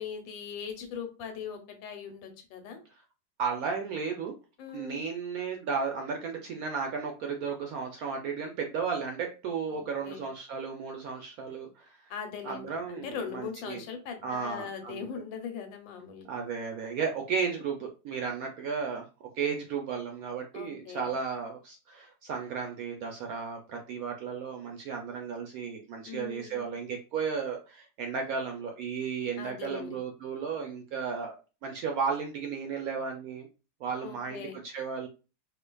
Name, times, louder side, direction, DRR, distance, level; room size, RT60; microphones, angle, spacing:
voice 1, 0.0-2.8 4.6-5.0 9.7-10.3 12.1-16.3 20.5-21.1 26.1-26.7 29.4-30.0 34.0-34.6, left 7 dB, 85° left, 6 dB, 1.5 m, -40 dB
voice 2, 3.4-4.3 4.7-12.0 12.4-13.8 14.2-15.1 16.2-19.1 19.4-31.4 31.6-33.5 33.8-35.1, right 5 dB, 75° right, 2 dB, 0.8 m, -34 dB
4.7 x 2.5 x 2.2 m, 0.32 s
omnidirectional pair, 2.0 m